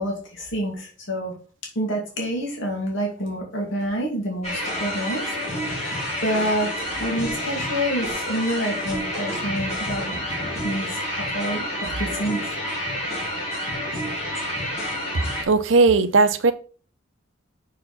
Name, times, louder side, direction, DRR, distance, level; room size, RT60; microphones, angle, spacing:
voice 1, 0.0-1.3 1.8-5.3 5.6-6.7 7.0-10.2 10.6-12.6, equal, 75° left, 2.3 m, -28 dB
sound 1, 4.4-15.4, equal, 35° left, 2.5 m, -29 dB
voice 2, 15.5-16.5, right 3 dB, 75° right, 0.7 m, -17 dB
6.6 x 4.7 x 4.1 m
head